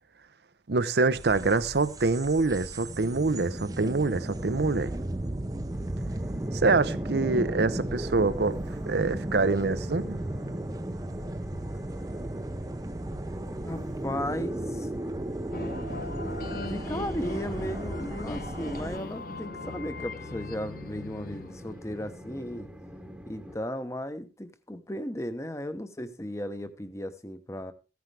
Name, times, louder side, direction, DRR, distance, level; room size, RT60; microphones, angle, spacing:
voice 1, 0.7-5.0 6.5-8.6 8.9-10.2, right 3 dB, 70° right, 0.7 m, -25 dB
sound 1, 1.1-19.0, right 1 dB, 20° right, 0.6 m, -35 dB
Train, 5.7-23.6, equal, 5° right, 1.1 m, -45 dB
voice 2, 13.6-14.9 16.7-22.7 23.3-27.7, equal, 15° left, 0.9 m, -35 dB
sound 2, 15.5-22.1, left 3 dB, 55° left, 0.7 m, -39 dB
15.0 x 9.5 x 3.4 m
head